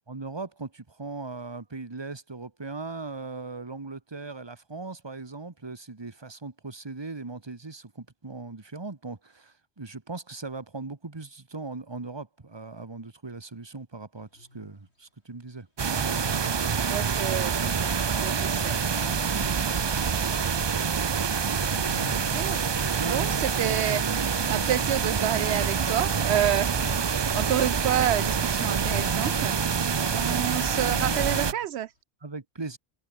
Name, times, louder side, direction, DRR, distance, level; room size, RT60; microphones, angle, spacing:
voice 1, 0.1-15.7 23.0-23.3 32.2-32.8, right 3 dB, 25° right, 1.4 m, -39 dB
Wild animals, 14.3-14.7 15.9-16.6 19.0-19.9 21.7-22.8 24.2-25.2 26.7-27.8 28.6-29.5 30.8-31.8, left 1 dB, 85° left, 6.8 m, -45 dB
sound 1, 15.8-31.5, right 6 dB, 40° right, 0.4 m, -26 dB
voice 2, 16.9-20.9 22.1-22.7 23.0-24.0 24.5-26.8 27.3-29.6 30.1-31.9, right 11 dB, 80° right, 0.9 m, -30 dB
omnidirectional pair, 1.1 m